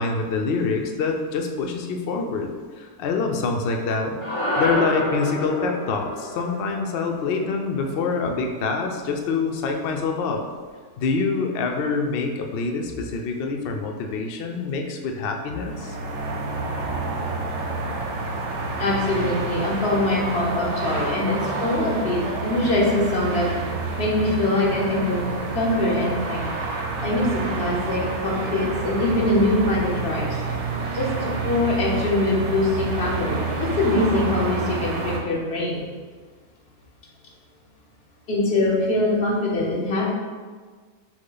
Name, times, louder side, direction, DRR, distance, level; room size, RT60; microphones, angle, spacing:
voice 1, 0.0-2.5 2.8-4.2 4.6-10.4 11.0-16.0, left 4 dB, 90° left, 3 dB, 0.5 m, -26 dB
sound 1, 4.2-8.7, left 1 dB, 30° left, 0.7 m, -29 dB
sound 2, 15.5-35.2, right 3 dB, 60° right, 0.8 m, -28 dB
voice 2, 18.8-23.5 24.0-25.2 25.5-26.5 27.0-30.2 30.9-33.4 33.8-35.9 38.3-40.1, left 2 dB, 45° left, -4 dB, 1.1 m, -23 dB
6.1 x 2.2 x 3.8 m, 1.5 s
omnidirectional pair, 1.7 m